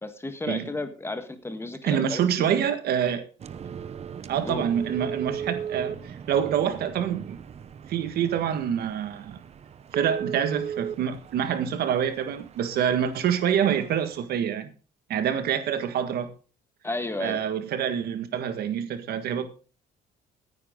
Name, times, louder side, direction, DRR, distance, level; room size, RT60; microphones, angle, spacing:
voice 1, 0.0-2.6 4.4-4.7 16.8-17.4, left 2 dB, 15° left, 1.6 m, -33 dB
voice 2, 1.8-3.3 4.3-7.4 7.9-9.4 9.9-14.7 15.1-16.3 17.2-19.5, right 9 dB, 65° right, 1.7 m, -26 dB
sound 1, 3.4-14.2, right 8 dB, 40° right, 0.9 m, -38 dB
14.5 x 9.6 x 3.8 m
cardioid pair, 110°, 17 cm